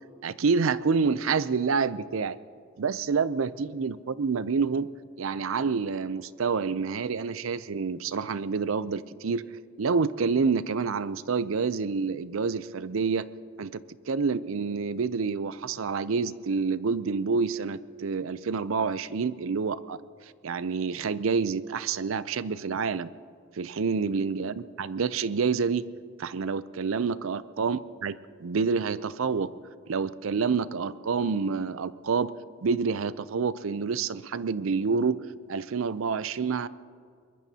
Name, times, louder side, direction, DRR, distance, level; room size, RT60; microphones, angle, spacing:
voice 1, 0.2-2.4 2.8-4.9 5.2-9.4 9.8-13.2 13.6-13.8 14.1-20.0 20.4-23.1 23.6-25.8 26.2-29.5 29.9-32.3 32.6-36.7, right 5 dB, 80° right, 16 dB, 0.5 m, -28 dB
23.0 x 21.0 x 2.8 m, 2.1 s
head